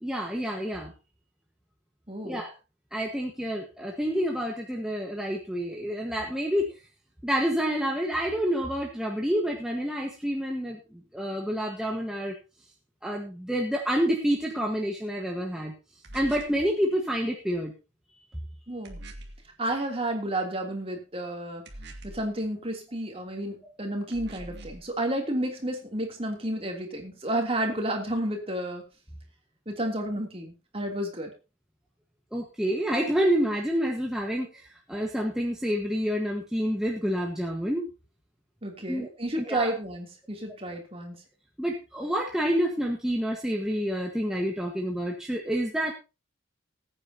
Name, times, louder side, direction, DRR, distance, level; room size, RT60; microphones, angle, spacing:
voice 1, 0.0-0.9 2.2-2.5 2.9-6.8 7.2-12.3 13.0-15.7 16.1-17.7 23.6-23.7 32.3-37.9 38.9-39.1 39.5-39.7 41.6-45.9, equal, 5° right, 0 dB, 1.4 m, -28 dB
voice 2, 2.1-2.4 18.7-19.0 19.6-21.6 22.1-28.8 29.7-31.3 38.6-41.1, right 1 dB, 30° right, 2 dB, 3.1 m, -31 dB
sound 1, 16.0-16.6 18.9-19.4 21.7-22.3 24.1-24.9, right 1 dB, 55° right, 2.1 m, -43 dB
20.0 x 9.0 x 2.9 m, 0.29 s
head